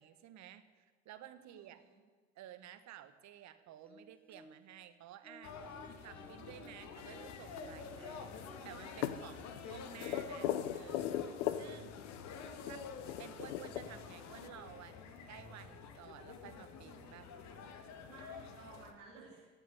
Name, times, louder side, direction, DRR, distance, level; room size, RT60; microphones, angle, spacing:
voice 1, 0.0-1.8 2.3-5.6 6.0-12.1 12.6-12.9 13.2-17.3, right 11 dB, 50° right, 12 dB, 1.4 m, -54 dB
voice 2, 1.4-2.0 9.2-9.6 18.0-19.5, right 3 dB, 90° right, -3 dB, 3.3 m, -57 dB
sound 1, 3.8-4.8 5.2-10.9 12.1-12.2 12.6-12.7, equal, 5° left, 2.5 m, -59 dB
sound 2, 5.4-18.9, left 5 dB, 50° left, 1.9 m, -49 dB
sound 3, 7.0-14.5, left 11 dB, 75° left, 0.9 m, -41 dB
16.5 x 7.8 x 9.4 m, 1.4 s
hypercardioid pair, 65°, 36 cm